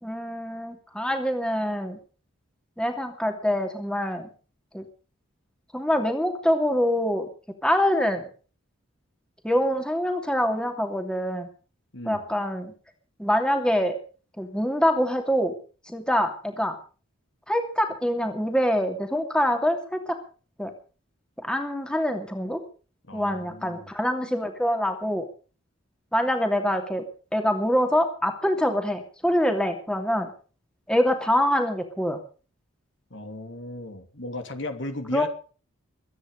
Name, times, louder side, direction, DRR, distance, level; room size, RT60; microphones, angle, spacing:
voice 1, 0.0-2.0 2.8-4.3 4.7-4.8 5.7-7.3 7.6-8.3 9.4-11.5 12.1-12.7 13.2-14.0 14.4-15.5 15.9-16.8 17.5-20.2 20.6-20.7 21.4-22.6 23.1-25.3 26.1-27.0 27.3-30.3 30.9-32.2 35.1-35.3, equal, 5° left, 4 dB, 2.7 m, -25 dB
voice 2, 23.1-23.9 33.1-35.3, left 2 dB, 60° left, 7 dB, 2.8 m, -36 dB
23.0 x 9.9 x 5.3 m, 0.39 s
head